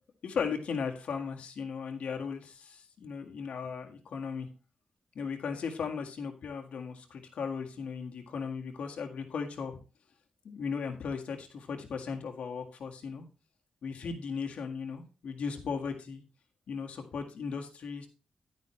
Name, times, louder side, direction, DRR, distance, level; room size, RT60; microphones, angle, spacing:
voice 1, 0.2-4.5 5.2-9.8 10.4-13.2 13.8-16.2 16.7-18.1, left 6 dB, 85° left, 3 dB, 1.8 m, -37 dB
11.0 x 9.3 x 3.2 m, 0.32 s
wide cardioid pair, 110°, 2 cm